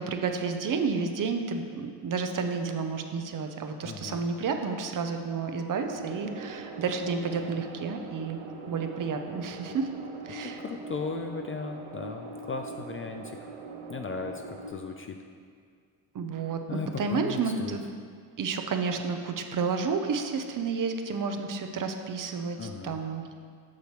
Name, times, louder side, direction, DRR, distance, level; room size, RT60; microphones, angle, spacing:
voice 1, 0.0-8.4 8.7-9.9 10.2-10.6 16.1-17.8 18.4-23.2, right 5 dB, 45° right, 6 dB, 0.7 m, -31 dB
voice 2, 3.8-4.2 10.4-13.4 13.9-15.2 16.7-17.8 22.6-23.0, left 4 dB, 30° left, 4 dB, 0.4 m, -36 dB
sound 1, 5.8-14.7, right 3 dB, 75° right, 1.0 m, -42 dB
8.4 x 6.5 x 3.1 m, 2.1 s
cardioid pair, 80°, 47 cm